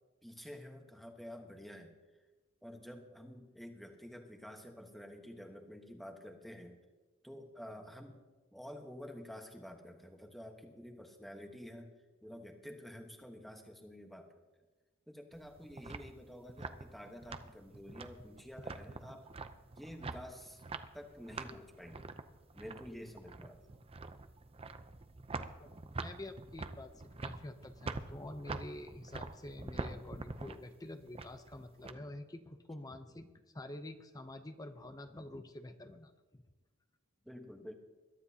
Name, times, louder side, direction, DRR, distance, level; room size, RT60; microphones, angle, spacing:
voice 1, 0.2-1.9 2.6-6.8 7.2-8.2 8.5-11.9 12.2-14.4 15.1-19.3 19.8-20.6 20.9-22.1 22.5-23.6 37.2-37.7, equal, ahead, 3 dB, 1.2 m, -50 dB
sound 1, 15.3-31.9, right 3 dB, 25° right, 0.6 m, -46 dB
voice 2, 26.0-33.3 33.5-36.4, left 1 dB, 20° left, 8 dB, 0.6 m, -47 dB
22.0 x 12.0 x 2.8 m, 1.2 s
head